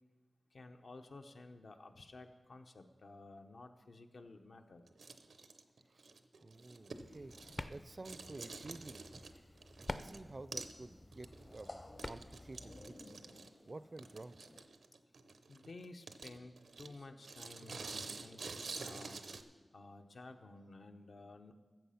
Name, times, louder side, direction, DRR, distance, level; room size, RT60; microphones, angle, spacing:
voice 1, 0.5-4.9 15.5-19.2 19.7-21.5, left 2 dB, 70° left, 5 dB, 0.9 m, -54 dB
sound 1, 4.9-7.8 8.0-10.2 10.5-10.8 11.1-19.4, right 4 dB, 90° right, 0.6 m, -49 dB
voice 2, 6.4-9.1 9.8-13.2 13.7-14.4, right 2 dB, 40° right, 15 dB, 0.4 m, -51 dB
sound 2, 6.5-14.7, left 2 dB, 40° left, 0.9 m, -59 dB
sound 3, 6.9-12.9, left 1 dB, 25° left, 0.5 m, -49 dB
14.0 x 7.7 x 5.7 m, 1.3 s
wide cardioid pair, 100°, 0 cm